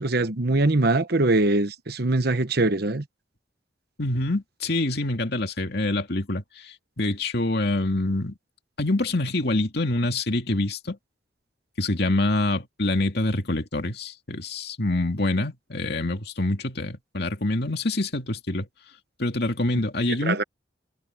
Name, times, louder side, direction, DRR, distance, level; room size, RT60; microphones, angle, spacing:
voice 1, 0.0-3.0 20.2-20.4, right 2 dB, 55° right, 1.1 m, -22 dB
voice 2, 4.0-8.3 8.8-11.0 11.8-18.7 19.2-20.4, left 2 dB, 60° left, 2.5 m, -26 dB
head